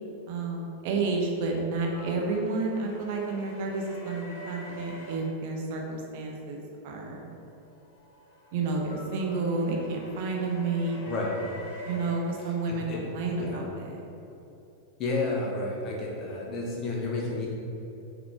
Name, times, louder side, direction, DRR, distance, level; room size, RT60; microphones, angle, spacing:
voice 1, 0.3-7.3 8.5-11.0 11.8-12.9 13.1-14.0, right 3 dB, 50° right, 0 dB, 1.0 m, -30 dB
sound 1, 1.9-5.2 7.6-13.1, right 1 dB, 50° left, 1.4 m, -45 dB
voice 2, 11.0-11.4 12.4-13.0 13.4-13.6 15.0-17.5, left 3 dB, 35° left, -3 dB, 1.5 m, -31 dB
6.1 x 4.2 x 4.7 m, 2.9 s
figure-of-eight pair, 90°, 0 cm